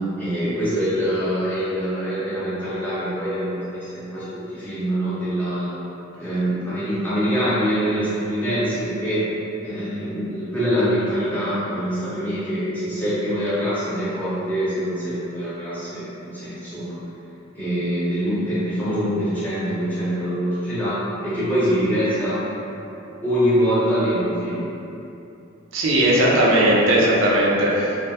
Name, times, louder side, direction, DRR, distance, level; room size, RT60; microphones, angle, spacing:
voice 1, 0.2-5.7 6.2-9.2 9.6-17.0 17.5-22.4 23.2-24.7, equal, 10° left, -12 dB, 0.6 m, -24 dB
voice 2, 25.7-28.0, right 1 dB, 75° right, -4 dB, 0.4 m, -18 dB
2.3 x 2.1 x 2.6 m, 2.8 s
head